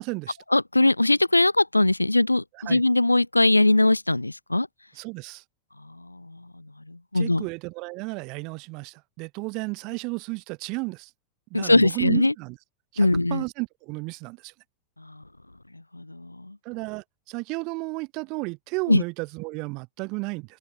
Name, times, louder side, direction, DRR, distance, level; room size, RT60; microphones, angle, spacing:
voice 1, 0.0-0.4 2.7-2.8 4.9-5.4 7.1-11.1 11.5-12.6 12.9-14.5 16.6-20.6, right 27 dB, 40° right, 0.9 m, -33 dB
voice 2, 0.5-4.7 6.0-6.4 6.9-7.4 11.5-12.3 13.0-13.4 15.9-16.6 18.9-19.0, left 2 dB, 85° left, 0.6 m, -21 dB
open air
figure-of-eight pair, 90°, 0 cm